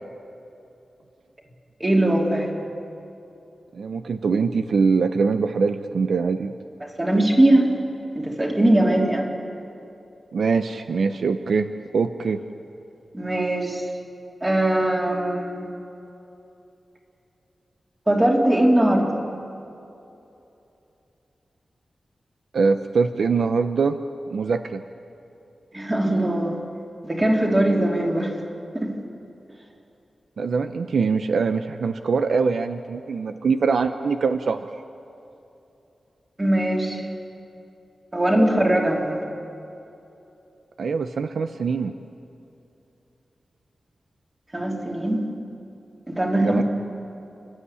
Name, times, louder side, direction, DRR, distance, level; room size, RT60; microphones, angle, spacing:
voice 1, 1.8-2.5 6.8-7.7 8.1-9.3 13.1-13.8 14.4-15.7 18.1-19.1 25.7-26.5 27.0-28.3 28.7-28.9 36.4-37.0 38.1-39.2 44.5-45.2 46.1-46.6, right 1 dB, 20° right, 0 dB, 3.2 m, -20 dB
voice 2, 3.7-6.5 10.3-11.7 11.9-12.4 22.5-24.0 24.3-24.8 30.4-34.7 40.8-41.9 46.4-46.6, right 5 dB, 75° right, 8 dB, 0.8 m, -23 dB
30.0 x 13.0 x 9.8 m, 2.9 s
wide cardioid pair, 150°, 0 cm